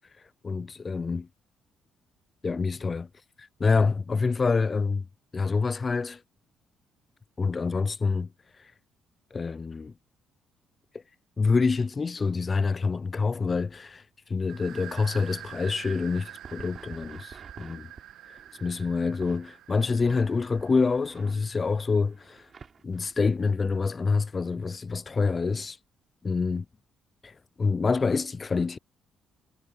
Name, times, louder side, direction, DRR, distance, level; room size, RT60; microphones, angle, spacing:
voice 1, 0.4-1.3 2.4-3.1 3.4-5.1 5.3-6.2 7.4-8.3 8.6-8.7 9.3-9.9 11.4-14.0 14.3-17.9 18.3-22.5 22.8-25.8 26.2-26.6 27.2-28.8, left 4 dB, 25° left, 0.3 m, -27 dB
sound 1, 14.5-22.0, right 13 dB, 70° right, 1.5 m, -46 dB
sound 2, 16.4-19.4 20.0-23.3, right 5 dB, 35° right, 7.0 m, -49 dB
cardioid pair, 130°, 0 cm